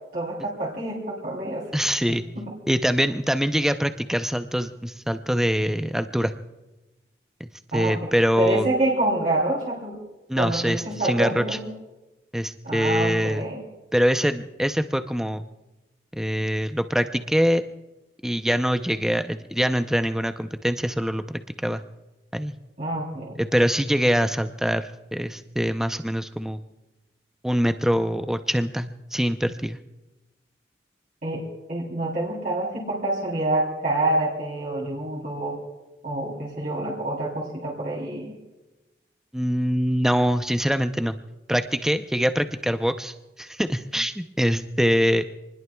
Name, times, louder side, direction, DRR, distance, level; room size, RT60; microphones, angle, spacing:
voice 1, 0.1-1.7 2.1-2.5 7.7-8.1 8.4-9.9 10.4-11.7 12.6-13.6 22.8-23.4 31.2-35.6 36.0-38.3, right 1 dB, 50° right, -5 dB, 3.4 m, -27 dB
voice 2, 1.7-2.2 2.7-6.3 7.4-8.7 10.3-11.4 12.3-13.5 13.9-15.4 16.1-17.7 18.2-21.8 22.3-22.5 23.4-26.6 27.4-29.8 39.3-41.2 41.5-45.3, equal, 5° right, 8 dB, 0.5 m, -24 dB
27.0 x 20.5 x 2.3 m, 1.1 s
head